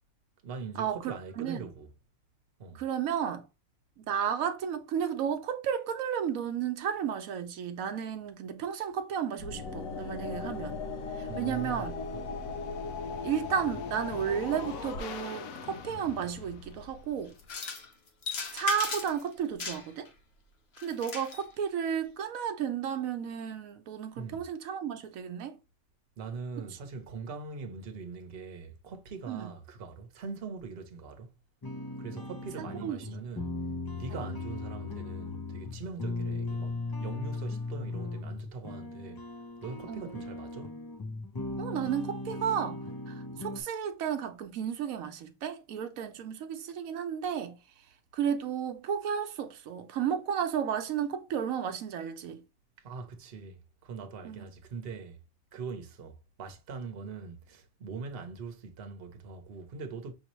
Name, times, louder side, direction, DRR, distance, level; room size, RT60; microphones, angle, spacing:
voice 1, 0.4-1.9 2.6-2.8 11.3-12.4 24.2-24.4 26.2-31.3 32.0-33.5 33.9-39.2 39.6-40.8 52.8-55.2 55.5-60.1, right 4 dB, 50° right, 1.0 m, -42 dB
voice 2, 2.7-3.4 4.0-10.8 11.2-11.9 13.2-17.3 18.5-20.1 20.8-25.6 29.3-29.5 32.6-33.1 39.9-40.2 41.6-42.8 43.1-47.6 48.1-52.4 54.2-54.5, right 8 dB, 90° right, 1.1 m, -33 dB
sound 1, 9.4-17.5, left 4 dB, 85° left, 1.0 m, -38 dB
sound 2, 17.4-17.9 18.2-19.2 19.6-20.1 20.8-21.4, left 4 dB, 55° left, 1.0 m, -36 dB
sound 3, 31.6-43.6, left 2 dB, 40° left, 0.3 m, -38 dB
5.8 x 2.8 x 3.0 m
omnidirectional pair, 1.4 m